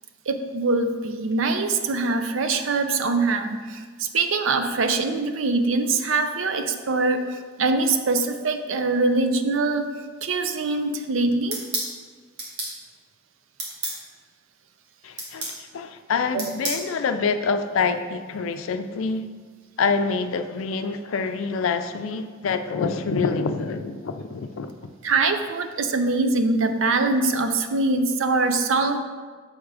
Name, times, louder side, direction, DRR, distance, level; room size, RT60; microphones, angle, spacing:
voice 1, 0.3-9.9 10.2-11.6 16.3-16.4 25.0-29.0, right 3 dB, 70° right, 7 dB, 0.5 m, -23 dB
sound 1, 11.5-11.9 12.4-12.7 13.6-14.0 15.2-15.6 16.4-16.8, right 2 dB, 55° right, 1.4 m, -29 dB
voice 2, 15.0-19.3 19.8-24.9, left 5 dB, 80° left, 9 dB, 0.4 m, -26 dB
6.5 x 3.6 x 4.8 m, 1.5 s
head